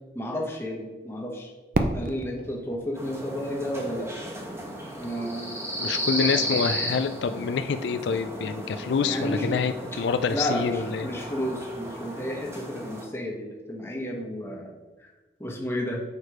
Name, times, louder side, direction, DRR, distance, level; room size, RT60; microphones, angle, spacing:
voice 1, 0.1-1.5 1.9-4.1 5.0-6.5 9.0-9.6 10.3-14.7 15.0-15.1 15.4-16.0, equal, 15° left, -1 dB, 1.0 m, -32 dB
Fireworks, 1.7-4.6, right 2 dB, 50° right, 0.5 m, -31 dB
sound 1, 3.0-13.1, equal, 15° right, 1.0 m, -34 dB
voice 2, 5.8-11.1, left 5 dB, 85° left, 9 dB, 0.4 m, -27 dB
6.6 x 4.6 x 4.8 m, 1.2 s
head